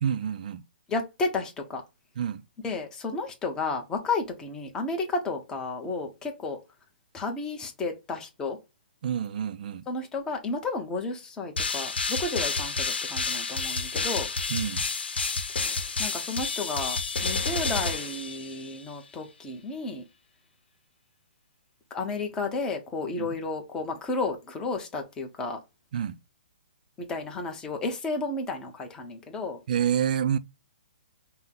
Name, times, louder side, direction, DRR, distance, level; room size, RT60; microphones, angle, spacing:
voice 1, 0.0-0.6 2.2-2.4 9.0-9.8 14.5-14.9 23.2-23.3 25.9-26.2 29.7-30.4, right 8 dB, 50° right, 0.4 m, -28 dB
voice 2, 0.9-1.8 2.6-6.6 7.1-8.6 9.9-14.3 15.5-20.0 21.9-25.6 27.0-29.6, left 3 dB, 10° left, 0.9 m, -32 dB
sound 1, 11.6-18.8, left 4 dB, 80° left, 0.9 m, -30 dB
5.5 x 2.2 x 3.7 m
hypercardioid pair, 155°, 6 cm